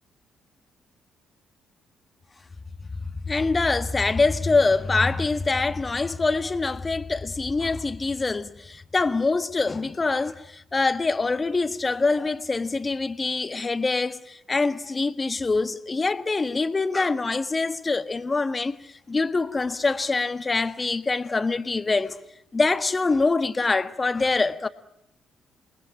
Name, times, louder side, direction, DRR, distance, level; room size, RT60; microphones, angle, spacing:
voice 1, 3.2-22.2 22.5-24.7, left 3 dB, 30° left, 1.6 m, -24 dB
28.0 x 21.0 x 9.9 m
hypercardioid pair, 45°, 0 cm